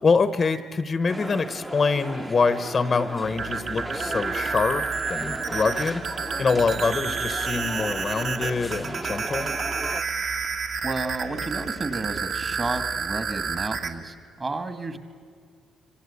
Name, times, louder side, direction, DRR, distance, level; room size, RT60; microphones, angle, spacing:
voice 1, 0.0-4.8 5.1-6.0 6.4-9.5, left 4 dB, 25° left, 13 dB, 0.8 m, -25 dB
sound 1, 1.1-10.0, right 1 dB, 10° right, 0.8 m, -36 dB
sound 2, 3.2-13.9, right 5 dB, 50° right, 1.8 m, -30 dB
voice 2, 10.8-15.0, right 3 dB, 25° right, 10 dB, 1.8 m, -32 dB
26.0 x 25.5 x 8.3 m, 2.1 s
cardioid pair, 160°, 0 cm